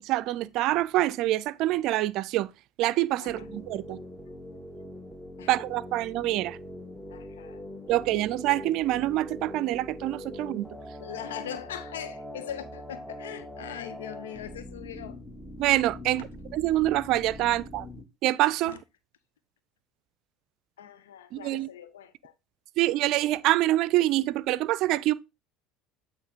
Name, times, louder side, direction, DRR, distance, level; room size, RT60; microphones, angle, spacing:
voice 1, 0.0-2.5 2.8-4.0 5.5-6.6 7.9-10.7 15.6-17.9 18.2-18.8 21.3-21.7 22.8-25.1, right 16 dB, 60° right, 0.5 m, -26 dB
sound 1, 3.3-18.0, left 1 dB, 5° left, 1.6 m, -42 dB
voice 2, 7.1-7.6 11.0-15.2 16.2-16.3 18.6-18.8 20.8-22.4, left 10 dB, 85° left, 0.7 m, -41 dB
8.5 x 3.1 x 5.1 m
hypercardioid pair, 75°, 0 cm